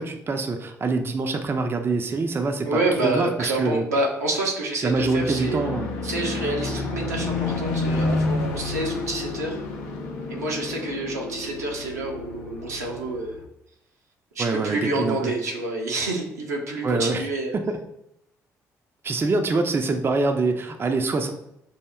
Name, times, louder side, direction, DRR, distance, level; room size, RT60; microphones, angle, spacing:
voice 1, 0.0-3.8 4.8-5.9 6.7-6.8 14.4-15.3 16.8-17.3 17.5-17.8 19.0-21.3, right 3 dB, 25° right, 6 dB, 0.5 m, -25 dB
voice 2, 2.6-5.6 6.0-9.6 10.3-13.4 14.3-17.5, right 2 dB, 80° right, -1 dB, 0.7 m, -28 dB
sound 1, 5.0-13.4, left 3 dB, 65° left, 0.5 m, -29 dB
5.5 x 2.7 x 2.3 m, 0.80 s
figure-of-eight pair, 45°, 9 cm